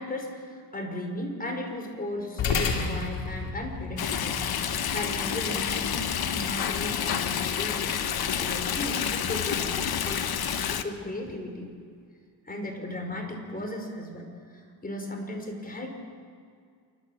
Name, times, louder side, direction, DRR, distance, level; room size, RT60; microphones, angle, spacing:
voice 1, 0.0-4.4 4.9-8.0 8.4-11.7 12.5-15.9, left 1 dB, 20° left, 2 dB, 5.5 m, -36 dB
sound 1, 2.4-11.0, left 4 dB, 70° left, 2.8 m, -36 dB
Stream, 4.0-10.8, left 8 dB, 55° left, 1.3 m, -29 dB
28.5 x 12.5 x 7.4 m, 2.2 s
cardioid pair, 75°, 45 cm